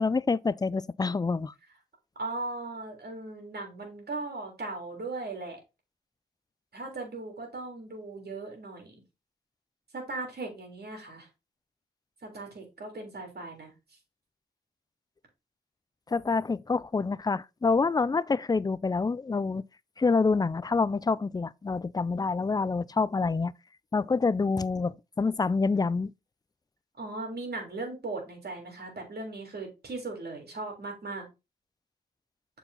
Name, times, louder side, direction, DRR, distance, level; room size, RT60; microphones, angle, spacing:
voice 1, 0.0-1.5 16.1-19.6 20.0-23.5 23.9-26.1, left 4 dB, 20° left, 0.4 m, -27 dB
voice 2, 2.2-5.6 6.7-9.0 9.9-11.3 12.2-13.7 27.0-31.3, right 3 dB, 65° right, 3.3 m, -38 dB
6.9 x 4.6 x 4.0 m
cardioid pair, 60°, 18 cm